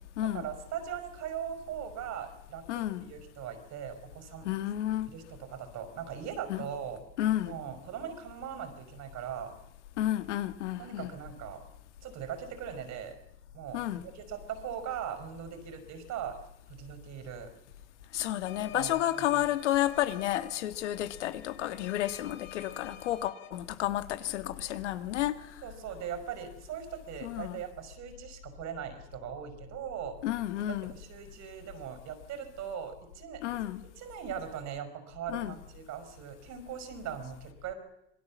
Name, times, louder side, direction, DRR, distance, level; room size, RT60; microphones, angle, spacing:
voice 1, 0.2-4.5 5.1-7.0 7.4-9.5 10.8-11.6 12.0-13.1 13.5-16.4 16.7-17.5 18.7-18.9 19.3-19.5 25.6-30.2 30.8-33.6 34.0-37.7, right 8 dB, 55° right, 5.4 m, -40 dB
voice 2, 2.7-3.1 4.5-5.1 6.5-6.6 7.2-7.5 10.0-11.1 13.7-14.0 18.1-25.4 27.2-27.6 30.2-30.9 33.4-33.8 35.3-35.6, left 13 dB, 85° left, 1.8 m, -31 dB
sound 1, 18.5-23.5, left 7 dB, 65° left, 7.1 m, -49 dB
27.0 x 20.0 x 7.4 m
hypercardioid pair, 90°, 34 cm